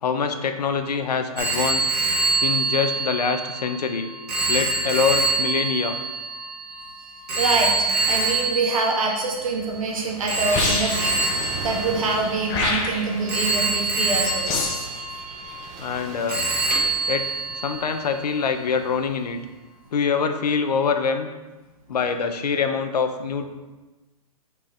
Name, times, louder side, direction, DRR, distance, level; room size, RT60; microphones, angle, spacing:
voice 1, 0.0-1.9 2.4-4.1 4.5-6.0 15.8-16.5 17.1-19.4 19.9-21.3 21.9-23.5, left 5 dB, 90° left, 7 dB, 0.8 m, -24 dB
Telephone, 1.4-9.7 10.3-12.8 13.3-16.0 16.3-18.0, right 3 dB, 85° right, 1.8 m, -25 dB
voice 2, 7.4-14.6, right 3 dB, 60° right, 0 dB, 1.5 m, -25 dB
Gull seagull / Waves surf, 9.0-19.6, right 3 dB, 30° right, 0.7 m, -40 dB
sound 1, 10.5-11.2 12.5-13.2 14.5-14.9, left 3 dB, 25° left, 0.7 m, -25 dB
5.4 x 4.6 x 4.3 m, 1.2 s
hypercardioid pair, 160°, 20 cm